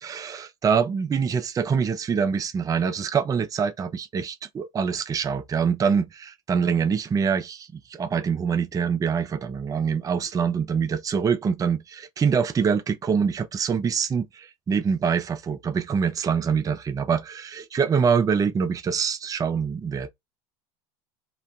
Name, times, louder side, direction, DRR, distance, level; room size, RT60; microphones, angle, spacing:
voice 1, 0.0-20.1, right 6 dB, 20° right, 0.4 m, -25 dB
3.0 x 2.0 x 2.6 m
hypercardioid pair, 80°, 17 cm